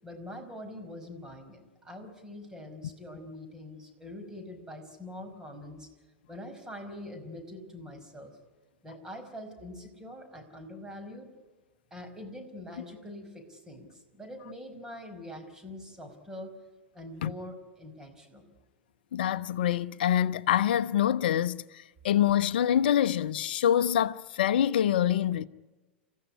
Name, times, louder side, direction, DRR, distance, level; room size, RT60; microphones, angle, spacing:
voice 1, 0.0-5.9 6.3-8.3 8.8-11.3 11.9-16.6 16.9-18.5, left 1 dB, 10° right, 5.1 m, -44 dB
voice 2, 19.1-21.6 22.0-25.5, left 10 dB, 60° left, 0.8 m, -25 dB
28.5 x 15.0 x 9.9 m
figure-of-eight pair, 90°, 6 cm